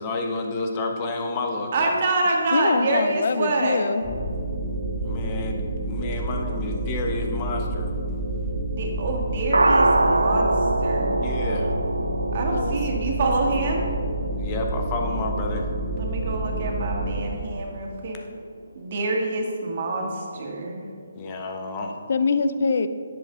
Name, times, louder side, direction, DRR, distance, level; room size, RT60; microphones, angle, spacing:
voice 1, 0.0-1.9 5.0-7.9 10.9-11.8 14.4-15.7 21.1-21.9, left 3 dB, 25° left, 2 dB, 1.2 m, -30 dB
voice 2, 1.7-3.9 8.6-10.5 10.8-11.2 12.3-13.8 15.9-18.2 18.8-20.8, right 2 dB, 45° right, 0 dB, 1.9 m, -26 dB
voice 3, 2.5-4.0 12.5-12.7 22.1-22.9, left 4 dB, 55° left, 11 dB, 0.6 m, -23 dB
sound 1, 3.6-18.4 18.7-18.9 19.1-19.2 19.6-19.7 20.1-20.2 20.4-20.5, right 2 dB, 90° right, 0.5 m, -28 dB
sound 2, 4.0-17.2, right 2 dB, 5° right, 1.6 m, -29 dB
10.5 x 7.9 x 3.9 m, 2.1 s
figure-of-eight pair, 150°, 0 cm